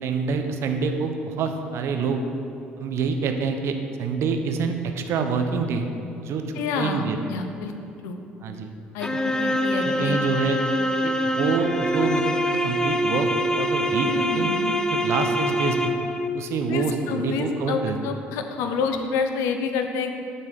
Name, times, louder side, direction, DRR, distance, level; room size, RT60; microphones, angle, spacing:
voice 1, 0.0-2.2 2.8-5.9 6.2-6.4 6.7-7.2 8.4-8.7 9.1-9.2 9.5-10.6 11.0-14.5 14.9-15.9 16.3-18.0, right 5 dB, 60° right, 6 dB, 0.7 m, -26 dB
voice 2, 6.5-7.0 7.3-7.7 8.0-8.2 8.9-10.2 14.1-14.8 16.7-20.1, left 5 dB, 70° left, 6 dB, 0.6 m, -28 dB
sound 1, 9.0-16.3, equal, 10° left, 0.5 m, -24 dB
7.4 x 4.0 x 6.4 m, 2.7 s
hypercardioid pair, 55°, 5 cm